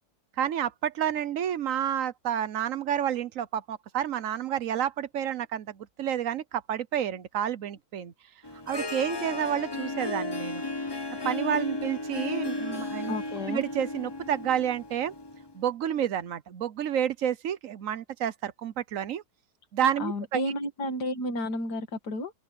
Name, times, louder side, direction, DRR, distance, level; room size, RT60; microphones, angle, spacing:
voice 1, 0.4-8.1 8.7-10.6 11.2-13.1 13.5-15.1 15.5-19.2 19.7-20.4, right 9 dB, 60° right, 1.0 m, -30 dB
Harp, 8.4-15.5, left 2 dB, 25° left, 0.5 m, -34 dB
voice 2, 13.1-13.6 20.0-22.3, left 1 dB, 65° left, 2.8 m, -31 dB
open air
omnidirectional pair, 1.9 m